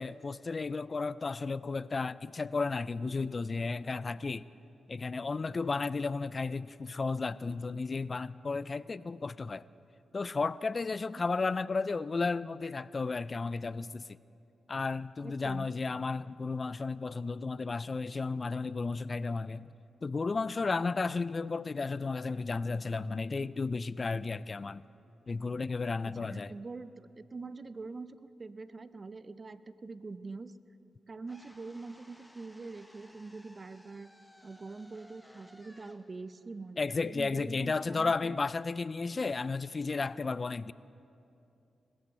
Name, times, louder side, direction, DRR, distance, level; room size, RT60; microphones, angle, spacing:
voice 1, 0.0-4.5 4.9-9.7 10.1-14.2 14.7-19.7 20.0-24.8 25.3-26.5 36.8-40.7, left 4 dB, 45° left, 0.3 m, -33 dB
voice 2, 15.2-15.7 26.3-30.5 31.1-34.1 34.4-38.4, right 3 dB, 45° right, 0.6 m, -44 dB
sound 1, 31.2-37.4, left 1 dB, 10° left, 1.0 m, -59 dB
21.0 x 12.5 x 4.4 m
supercardioid pair, 45°, 0 cm